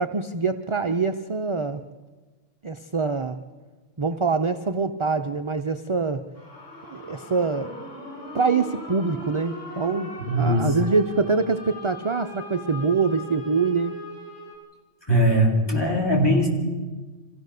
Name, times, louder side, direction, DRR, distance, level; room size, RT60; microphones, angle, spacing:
voice 1, 0.0-1.8 2.6-3.4 4.0-6.2 6.9-7.7 8.3-13.9, right 4 dB, 40° right, 7 dB, 0.4 m, -24 dB
Scary Siren (Air Raid Tornado Nuke), 6.3-14.6, equal, 65° left, 4.8 m, -39 dB
voice 2, 10.2-10.7 15.1-16.5, equal, 20° left, -1 dB, 4.2 m, -20 dB
26.0 x 16.0 x 6.6 m, 1.3 s
omnidirectional pair, 1.3 m